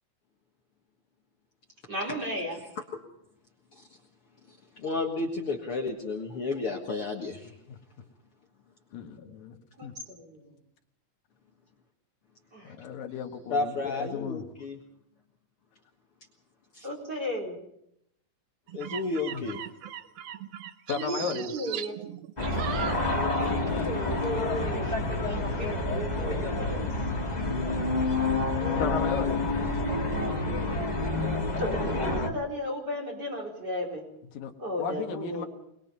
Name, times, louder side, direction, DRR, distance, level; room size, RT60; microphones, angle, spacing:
voice 1, 1.9-2.6 9.2-9.3 9.8-10.5 12.5-12.7 16.8-17.6 20.9-21.9 23.7-25.8 26.2-26.9 28.6-29.4 31.6-34.0 34.6-35.5, equal, 30° right, -1 dB, 4.8 m, -35 dB
voice 2, 4.8-7.5 13.5-14.8 16.7-16.9 18.7-19.6, left 3 dB, 50° left, 1 dB, 2.2 m, -32 dB
voice 3, 8.9-9.5 9.8-9.9 12.6-14.4 19.3-19.4 20.9-21.5 28.8-29.5 34.3-34.5 34.8-35.5, left 7 dB, 90° left, 4 dB, 3.4 m, -34 dB
sound 1, 18.7-23.6 23.9-24.2, right 10 dB, 70° right, 1.5 m, -38 dB
sound 2, 22.4-32.3, left 2 dB, 15° left, 1.7 m, -28 dB
23.0 x 21.5 x 5.4 m, 0.77 s
omnidirectional pair, 3.8 m